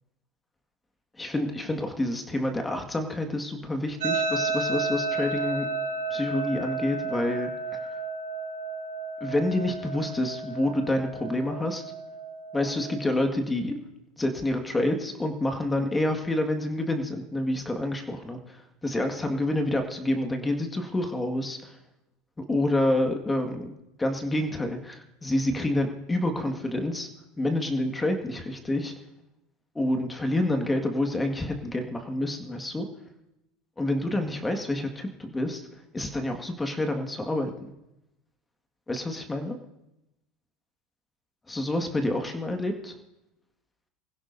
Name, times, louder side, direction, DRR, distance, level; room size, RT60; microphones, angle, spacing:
voice 1, 1.2-5.7 6.1-7.9 9.2-11.8 12.5-13.8 14.2-21.7 22.4-23.7 24.0-27.1 27.4-28.9 29.8-32.9 33.8-35.6 35.9-37.7 38.9-39.6 41.5-42.9, left 1 dB, 15° left, 5 dB, 1.9 m, -28 dB
sound 1, 4.0-13.1, right 3 dB, 80° right, 2.5 m, -32 dB
23.0 x 16.0 x 2.7 m, 0.91 s
hypercardioid pair, 85°, 0 cm